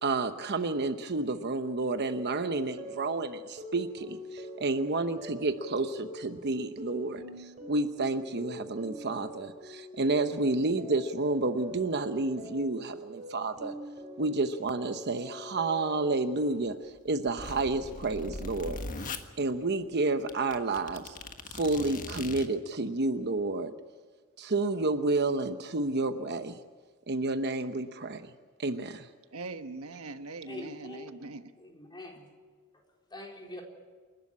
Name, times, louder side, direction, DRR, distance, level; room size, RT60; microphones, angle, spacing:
voice 1, 0.0-13.7 14.2-16.8 17.0-18.8 19.4-21.2 21.5-23.7 24.4-26.6 27.1-28.3 28.6-29.1, right 3 dB, 50° right, 9 dB, 1.0 m, -30 dB
sound 1, 2.0-16.7, equal, 35° right, 4.4 m, -44 dB
sound 2, 17.0-19.2 19.9-20.0 20.3-22.5, left 3 dB, 40° left, 1.5 m, -40 dB
voice 2, 29.3-31.5, right 3 dB, 85° right, 8 dB, 1.2 m, -41 dB
voice 3, 30.5-31.1 31.6-32.3 33.1-33.6, left 1 dB, 20° left, 0 dB, 4.1 m, -43 dB
28.5 x 12.0 x 9.8 m, 1.5 s
head